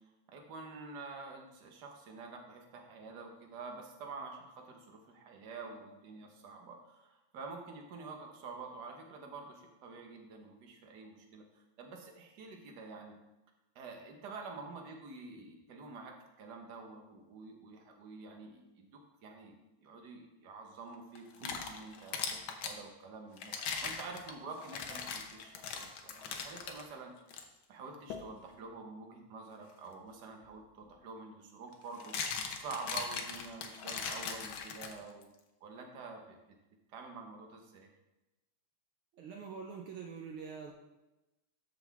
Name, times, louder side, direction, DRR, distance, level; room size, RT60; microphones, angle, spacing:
voice 1, 0.3-13.2 13.7-19.5 19.8-23.5 23.8-27.1 27.7-35.3 35.6-36.4 36.9-37.9, right 4 dB, 55° right, 2 dB, 1.2 m, -48 dB
sound 1, 21.1-22.8 23.4-26.8 27.3-27.4 28.1-28.3 30.4-30.5 31.7-35.2, left 6 dB, 75° left, 1.2 m, -40 dB
voice 2, 39.1-40.7, right 6 dB, 80° right, 1 dB, 1.1 m, -45 dB
13.5 x 6.1 x 3.5 m, 1.0 s
omnidirectional pair, 3.4 m